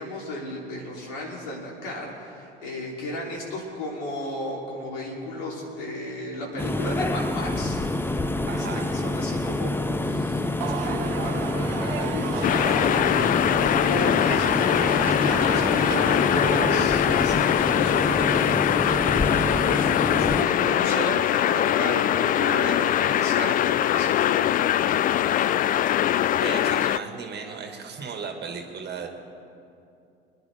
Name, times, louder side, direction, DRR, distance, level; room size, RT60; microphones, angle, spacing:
voice 1, 0.0-7.8 8.1-14.7 15.0-24.5, left 1 dB, 65° left, -2 dB, 3.7 m, -34 dB
sound 1, 6.6-20.4, left 2 dB, 5° left, 0.7 m, -27 dB
voice 2, 8.5-8.8 24.9-25.5 26.0-29.1, right 5 dB, 35° right, 3 dB, 2.1 m, -36 dB
sound 2, 9.7-17.4, right 13 dB, 70° right, 0.6 m, -35 dB
sound 3, 12.4-27.0, left 11 dB, 30° left, 0.4 m, -22 dB
26.0 x 11.0 x 3.6 m, 2.6 s
figure-of-eight pair, 65°, 30 cm